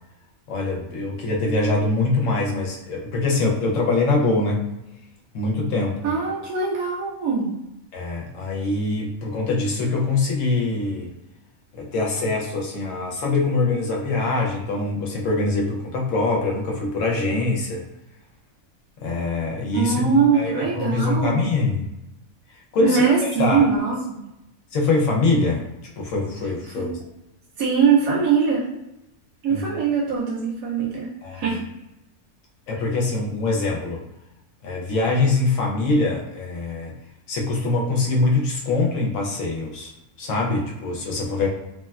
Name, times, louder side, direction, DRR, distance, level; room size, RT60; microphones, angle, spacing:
voice 1, 0.5-4.7 5.3-6.1 7.9-11.1 11.7-17.9 19.0-21.9 22.7-23.7 24.7-25.6 26.0-27.0 29.5-29.6 31.2-31.4 32.7-34.0 34.6-36.9 37.3-39.9 40.2-41.5, left 3 dB, 70° left, -1 dB, 1.0 m, -23 dB
voice 2, 6.0-7.5 19.7-21.4 22.8-24.2 26.8-26.9 27.6-28.6 29.4-31.6, right 5 dB, 85° right, -6 dB, 1.0 m, -21 dB
3.3 x 2.2 x 2.3 m, 0.91 s
omnidirectional pair, 1.5 m